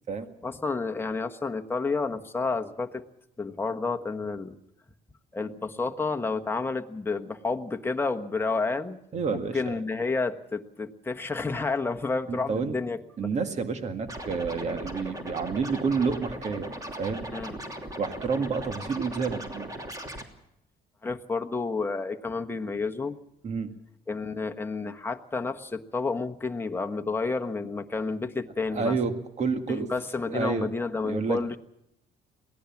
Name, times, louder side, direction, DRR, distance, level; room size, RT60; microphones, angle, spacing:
voice 1, 0.4-3.0 3.4-4.6 5.3-9.0 9.3-13.0 17.3-17.6 21.0-23.2 24.1-29.0 29.7-31.6, left 3 dB, 15° left, 5 dB, 1.3 m, -30 dB
voice 2, 9.1-9.7 12.3-12.8 13.2-16.7 17.0-17.2 18.0-19.7 23.4-23.7 28.7-29.9 30.3-30.7 31.0-31.6, right 5 dB, 40° right, 7 dB, 2.0 m, -29 dB
Scratching (performance technique), 14.1-20.2, right 1 dB, 20° right, 3.0 m, -38 dB
22.5 x 17.0 x 7.2 m, 0.78 s
cardioid pair, 110°, 17 cm